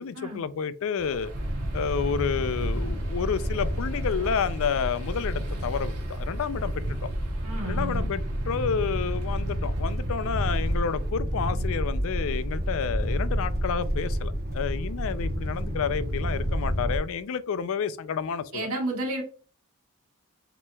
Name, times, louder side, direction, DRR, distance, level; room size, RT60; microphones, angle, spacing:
voice 1, 0.0-1.3 1.7-7.0 7.6-18.7, left 6 dB, 65° left, 0.4 m, -30 dB
sound 1, 1.0-11.1, equal, 85° right, 1.2 m, -40 dB
sound 2, 1.3-17.0, equal, 45° right, 0.9 m, -29 dB
voice 2, 7.4-8.1 18.5-19.2, right 1 dB, 70° right, 1.7 m, -31 dB
7.3 x 3.0 x 2.3 m
head